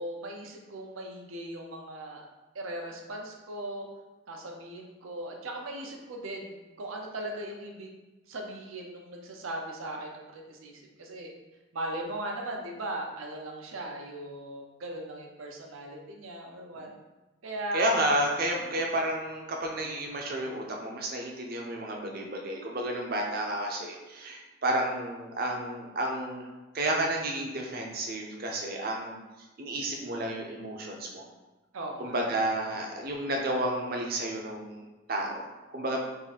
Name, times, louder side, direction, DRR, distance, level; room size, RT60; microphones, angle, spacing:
voice 1, 0.0-2.3 2.5-3.9 4.3-7.9 8.3-10.7 11.0-11.3 11.7-16.9 17.4-17.9 18.6-18.7 31.7-32.2, right 1 dB, 85° right, 1 dB, 0.7 m, -38 dB
voice 2, 17.7-26.5 26.7-29.2 29.6-31.3 32.0-36.0, right 1 dB, 45° right, 0 dB, 0.6 m, -31 dB
3.7 x 2.6 x 4.1 m, 1.1 s
head